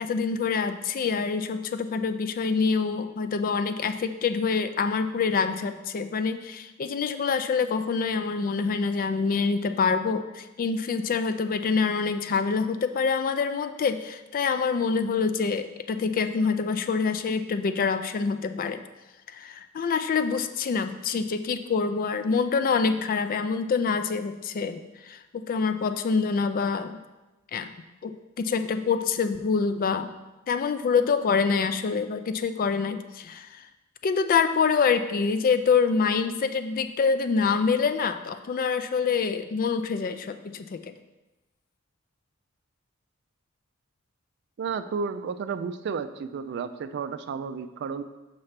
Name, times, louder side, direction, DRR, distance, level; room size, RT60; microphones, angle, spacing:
voice 1, 0.0-18.8 19.3-27.0 27.5-27.7 28.0-30.1 30.5-33.7 34.0-40.9, left 5 dB, 45° left, 9 dB, 0.3 m, -26 dB
voice 2, 44.6-48.0, right 5 dB, 55° right, 11 dB, 0.3 m, -32 dB
5.8 x 3.2 x 5.7 m, 1.1 s
head